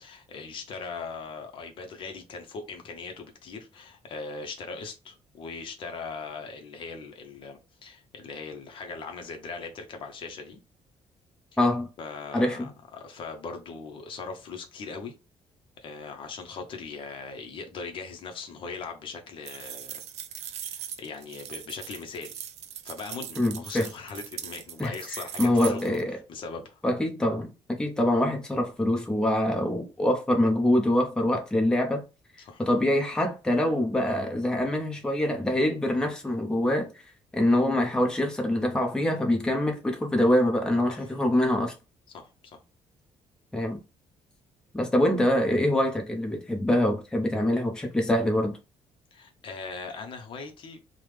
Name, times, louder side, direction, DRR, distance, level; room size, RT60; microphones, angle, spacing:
voice 1, 0.0-10.6 12.0-15.1 15.8-19.9 20.4-22.4 22.8-26.0 26.3-26.8 32.4-32.6 40.9-41.1 42.1-42.6 49.1-50.8, left 4 dB, 50° left, 0.6 m, -40 dB
voice 2, 11.6-11.9 12.3-12.7 23.4-23.9 24.8-24.9 25.4-26.1 26.8-27.5 27.8-32.0 32.6-36.9 37.3-41.7 43.5-43.8 44.7-48.6, left 1 dB, 5° left, 0.6 m, -24 dB
sound 1, 19.4-26.0, right 9 dB, 75° right, 0.4 m, -40 dB
3.2 x 2.0 x 3.2 m
cardioid pair, 155°, 11 cm